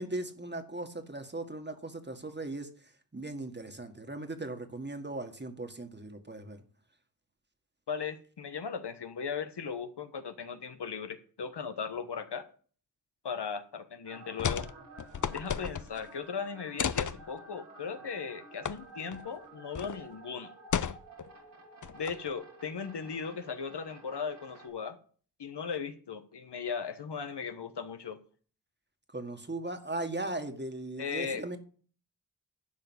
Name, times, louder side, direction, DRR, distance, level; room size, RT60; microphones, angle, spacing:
voice 1, 0.0-2.7 3.1-6.6 29.1-31.6, right 2 dB, 25° right, 1.9 m, -38 dB
voice 2, 7.9-12.5 13.2-14.7 15.3-20.5 21.9-25.0 25.4-28.2 31.0-31.6, left 6 dB, 75° left, 1.3 m, -37 dB
sound 1, 14.0-24.7, right 2 dB, 85° right, 3.4 m, -52 dB
sound 2, 14.4-14.7 15.0-16.1 16.8-17.2 18.6-18.8 19.1-19.2 19.7-20.0 20.7-21.3 21.8-22.3, left 7 dB, 50° left, 0.6 m, -33 dB
11.5 x 4.9 x 8.2 m
cardioid pair, 55°, 41 cm